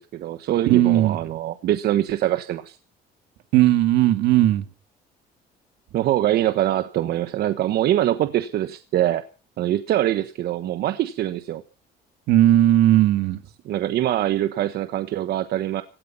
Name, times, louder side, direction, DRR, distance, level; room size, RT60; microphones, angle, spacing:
voice 1, 0.0-2.8 5.9-9.2 9.6-11.6 13.7-15.8, right 13 dB, 70° right, 11 dB, 1.3 m, -23 dB
voice 2, 0.7-1.2 3.5-4.6 12.3-13.4, right 13 dB, 85° right, 10 dB, 2.2 m, -17 dB
17.5 x 13.0 x 5.8 m, 0.36 s
cardioid pair, 110°, 17 cm